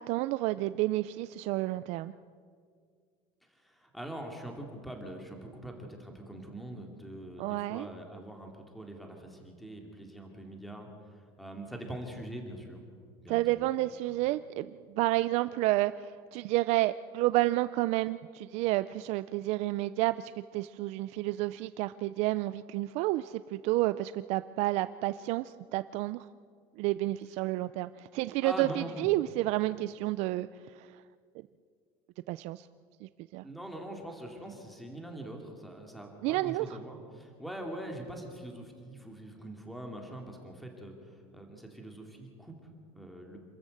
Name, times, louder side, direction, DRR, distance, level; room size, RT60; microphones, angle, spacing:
voice 1, 0.0-2.1 7.4-7.9 13.3-26.3 26.8-31.0 32.3-32.7 33.0-33.4 36.2-36.8, right 17 dB, 55° right, 14 dB, 0.5 m, -30 dB
voice 2, 3.5-12.8 13.2-13.7 14.0-14.2 28.4-29.1 33.4-43.4, right 1 dB, ahead, 2 dB, 2.5 m, -43 dB
27.5 x 14.0 x 7.9 m, 2.1 s
cardioid pair, 155°, 13 cm